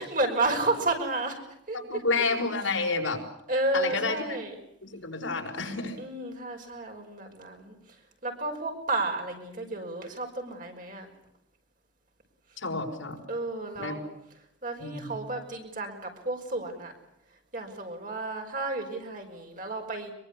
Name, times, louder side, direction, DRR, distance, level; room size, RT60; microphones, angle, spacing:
voice 1, 0.0-1.4 1.7-2.0 3.5-4.5 5.6-7.8 8.2-11.1 13.3-14.0 14.6-16.9 17.5-20.1, right 2 dB, 45° right, 3 dB, 5.6 m, -32 dB
voice 2, 1.7-3.2 3.7-4.4 4.8-6.0 12.6-13.2 13.8-14.0 14.8-15.2, left 3 dB, 85° left, 2 dB, 5.3 m, -30 dB
24.0 x 23.0 x 8.4 m, 0.77 s
head